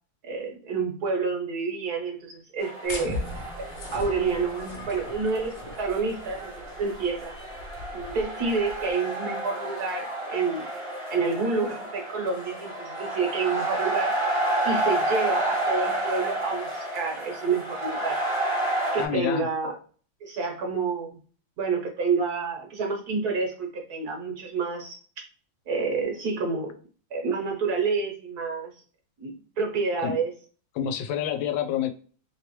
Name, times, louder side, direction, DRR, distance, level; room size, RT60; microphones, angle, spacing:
voice 1, 0.2-3.2 3.6-3.7 3.9-6.5 6.8-7.4 7.9-10.7 11.1-14.3 14.6-18.2 18.9-19.7 20.2-21.2 21.6-25.0 25.7-26.7 27.1-28.7 29.2-30.3, right 4 dB, 60° right, 1 dB, 1.3 m, -28 dB
sound 1, 2.6-19.1, right 1 dB, 20° right, 0.9 m, -30 dB
sound 2, 2.8-8.9, left 2 dB, 65° left, 1.1 m, -39 dB
voice 2, 19.0-19.5 30.0-30.2 30.7-31.9, left 9 dB, 85° left, 7 dB, 1.3 m, -28 dB
3.2 x 3.0 x 3.0 m, 0.41 s
omnidirectional pair, 2.1 m